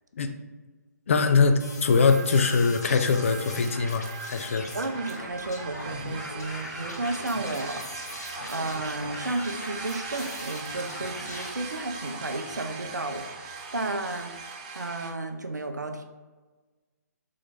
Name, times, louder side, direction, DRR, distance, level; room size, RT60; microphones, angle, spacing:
voice 1, 1.1-4.7, left 4 dB, 45° left, 7 dB, 0.4 m, -22 dB
sound 1, 1.6-11.5, left 2 dB, 65° left, 0.9 m, -41 dB
sound 2, 1.8-15.1, right 4 dB, 25° right, 0.4 m, -40 dB
voice 2, 4.7-16.0, right 2 dB, 80° right, 6 dB, 0.5 m, -33 dB
3.8 x 3.1 x 3.4 m, 1.3 s
figure-of-eight pair, 140°, 9 cm